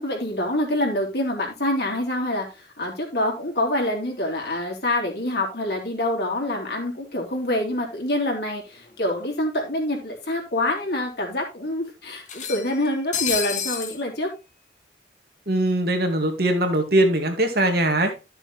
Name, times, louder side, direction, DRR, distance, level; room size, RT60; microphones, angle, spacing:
voice 1, 0.0-14.3, left 1 dB, 60° left, 0 dB, 3.7 m, -26 dB
sound 1, 8.9-9.0 9.2-9.3 10.4-10.5 10.9-11.0 12.3-14.0, left 8 dB, 40° left, 1.6 m, -29 dB
voice 2, 15.5-18.1, right 1 dB, 55° right, 4 dB, 2.1 m, -21 dB
13.0 x 6.9 x 3.2 m, 0.27 s
head